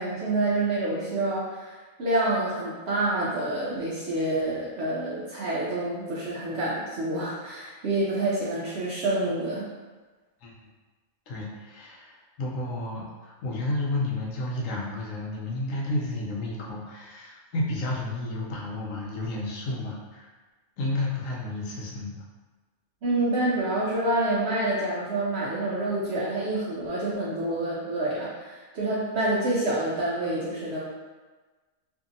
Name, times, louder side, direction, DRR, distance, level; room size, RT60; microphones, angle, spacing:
voice 1, 0.0-9.6 23.0-30.8, right 2 dB, 65° right, -7 dB, 0.6 m, -27 dB
voice 2, 11.3-20.3 20.8-22.2, left 2 dB, 70° left, -3 dB, 0.9 m, -31 dB
2.6 x 2.6 x 2.5 m, 1.3 s
omnidirectional pair, 1.5 m